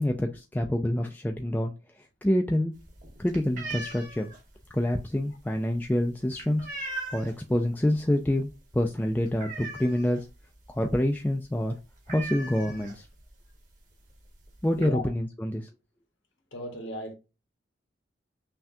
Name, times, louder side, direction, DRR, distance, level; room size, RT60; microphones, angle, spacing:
voice 1, 0.0-1.7 2.2-2.7 3.2-4.3 4.7-6.7 7.1-10.3 10.7-11.8 12.1-13.1 14.6-15.7, left 1 dB, 10° left, 0.3 m, -27 dB
sound 1, 2.8-7.5 7.9-8.2 8.5-8.6 8.9-10.3 10.7-10.8 11.0-11.2 11.5-11.6 12.0-13.3 14.1-14.2 14.4-14.9, right 2 dB, 45° right, 1.5 m, -39 dB
voice 2, 14.7-15.1 16.5-17.1, left 1 dB, 85° left, 1.3 m, -36 dB
5.7 x 2.3 x 2.6 m
head